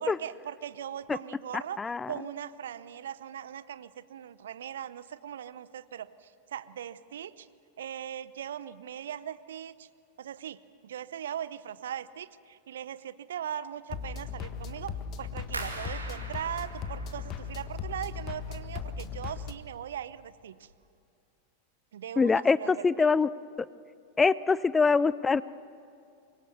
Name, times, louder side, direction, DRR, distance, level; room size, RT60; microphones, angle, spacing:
voice 1, 0.0-1.8 2.1-7.5 7.8-9.9 10.2-14.9 15.2-20.7 21.9-23.1, right 9 dB, 60° right, 16 dB, 0.7 m, -39 dB
voice 2, 1.8-2.1 22.2-23.3 24.2-25.4, left 4 dB, 15° left, 19 dB, 0.5 m, -24 dB
sound 1, 13.9-19.5, left 6 dB, 35° left, 1.5 m, -38 dB
sound 2, 15.5-18.4 18.7-19.4 19.7-20.2 20.6-20.7, right 2 dB, 80° right, 2.6 m, -42 dB
25.5 x 22.0 x 7.0 m, 2.5 s
figure-of-eight pair, 90°, 0 cm